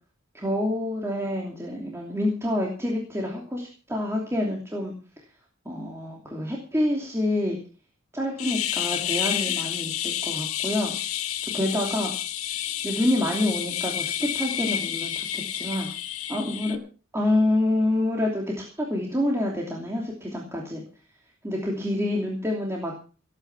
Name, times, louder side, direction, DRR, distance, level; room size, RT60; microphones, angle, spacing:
voice 1, 0.3-4.9 5.6-7.6 8.1-10.9 11.4-12.1 12.8-15.9 16.3-16.8 17.1-20.8 21.4-22.9, left 1 dB, 15° right, -1 dB, 2.9 m, -27 dB
sound 1, 8.4-16.8, left 11 dB, 85° left, 1.5 m, -30 dB
18.5 x 9.1 x 6.1 m, 0.37 s
head